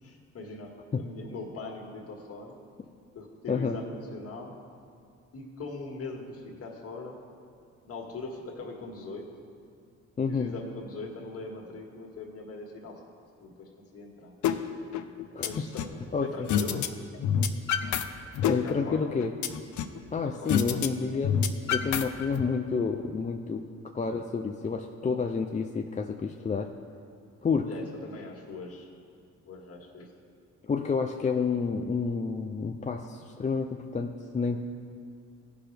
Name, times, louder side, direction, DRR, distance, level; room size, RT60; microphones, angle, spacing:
voice 1, 0.0-2.6 3.2-4.5 5.3-7.2 7.8-9.3 10.3-13.0 13.4-14.3 15.3-16.9 18.6-19.1 20.2-20.6 24.0-24.2 27.7-28.9 29.5-30.1, left 3 dB, 50° left, 0 dB, 1.8 m, -41 dB
voice 2, 10.2-10.5 15.3-15.7 16.1-16.5 18.4-19.3 20.1-21.4 21.7-23.6 23.9-26.7 27.4-27.7 30.6-34.6, left 5 dB, 25° left, 4 dB, 0.4 m, -29 dB
sound 1, 14.4-14.6 14.9-16.0 16.5-16.9 17.1-18.0 18.3-20.0 20.5-20.9 21.1-22.4, left 8 dB, 70° left, 0.6 m, -27 dB
16.5 x 5.9 x 3.3 m, 2.3 s
cardioid pair, 90°, 30 cm